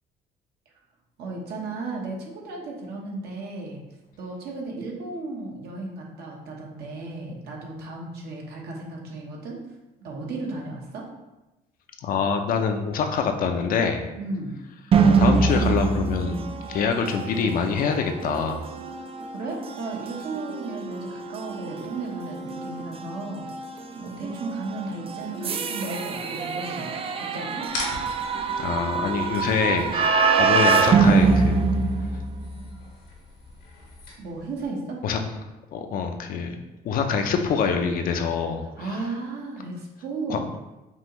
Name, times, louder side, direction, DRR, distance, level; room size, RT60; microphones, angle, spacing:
voice 1, 1.2-3.8 4.2-9.6 10.0-11.1 14.2-14.5 19.3-23.5 23.9-27.7 34.2-35.0 38.8-40.5, right 2 dB, 70° right, -1 dB, 1.1 m, -34 dB
voice 2, 12.0-14.0 15.2-16.4 16.7-18.6 28.6-31.7 35.0-35.2 35.7-36.6 36.8-38.6 40.3-40.4, left 6 dB, 55° left, 5 dB, 0.5 m, -25 dB
sound 1, 14.9-32.6, right 5 dB, 35° right, 0.4 m, -24 dB
sound 2, 27.7-34.7, left 2 dB, 85° left, 1.3 m, -41 dB
5.4 x 2.5 x 3.0 m, 1.0 s
cardioid pair, 110°, 17 cm